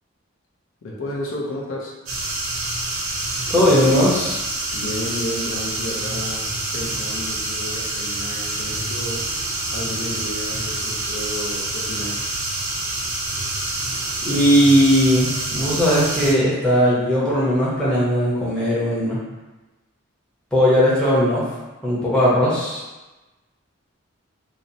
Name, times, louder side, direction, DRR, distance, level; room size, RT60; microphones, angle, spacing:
voice 1, 0.8-1.9 4.7-9.3 9.7-12.2, left 1 dB, 80° left, -3 dB, 0.5 m, -32 dB
sound 1, 2.1-16.3, right 2 dB, 85° right, 0.7 m, -27 dB
voice 2, 3.5-4.4 14.2-19.2 20.5-21.4 21.8-22.8, equal, 5° left, -9 dB, 0.6 m, -18 dB
2.8 x 2.0 x 2.6 m, 1.1 s
head